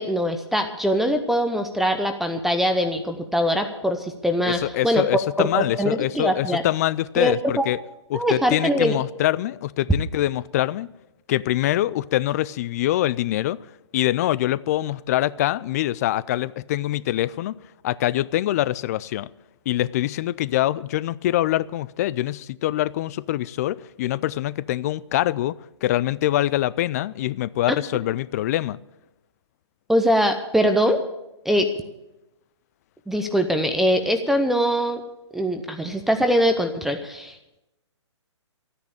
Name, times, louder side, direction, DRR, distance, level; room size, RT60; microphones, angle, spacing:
voice 1, 0.0-4.6 4.8-5.0 5.4-6.6 7.2-7.7 8.1-9.0 29.9-31.0 31.4-31.7 33.1-35.0 35.3-37.4, equal, ahead, 0.7 m, -22 dB
voice 2, 4.4-7.8 8.1-10.9 11.3-13.7 13.9-17.6 17.8-19.3 19.7-28.8, left 14 dB, 30° left, 0.4 m, -24 dB
13.5 x 9.8 x 8.8 m
figure-of-eight pair, 130°, 15 cm